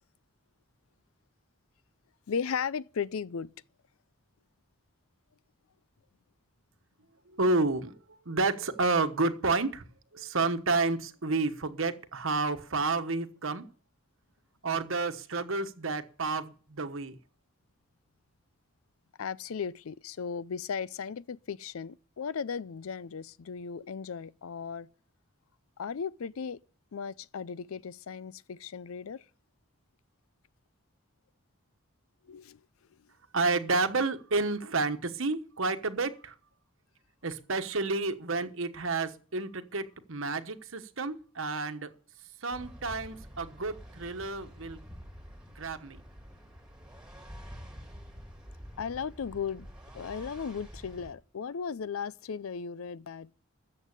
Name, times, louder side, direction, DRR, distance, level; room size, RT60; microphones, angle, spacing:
voice 1, 2.3-3.5 19.2-24.9 25.8-26.6 26.9-29.2 32.2-32.6 48.8-49.7 49.9-53.3, left 6 dB, 80° left, 0.5 m, -36 dB
voice 2, 7.3-9.8 10.1-13.7 14.6-17.2 33.3-36.3 37.2-41.9 42.4-44.8 45.5-46.0, right 3 dB, 70° right, 1.2 m, -30 dB
sound 1, 42.5-51.1, equal, 5° right, 2.2 m, -48 dB
14.0 x 7.8 x 6.8 m
head